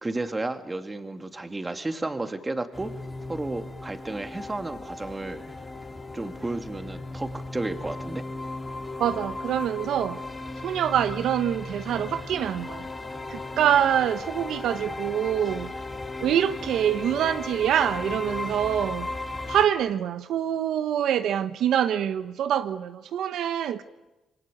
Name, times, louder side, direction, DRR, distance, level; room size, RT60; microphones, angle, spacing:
voice 1, 0.0-2.9 3.3-5.4 6.1-8.2, right 2 dB, 20° right, 2.4 m, -32 dB
sound 1, 2.7-19.7, left 2 dB, 20° left, 3.0 m, -36 dB
voice 2, 9.0-10.2 10.6-12.8 13.3-15.7 16.2-19.1 19.5-23.8, right 10 dB, 75° right, 0.9 m, -25 dB
27.0 x 22.0 x 9.2 m
cardioid pair, 90°, 0 cm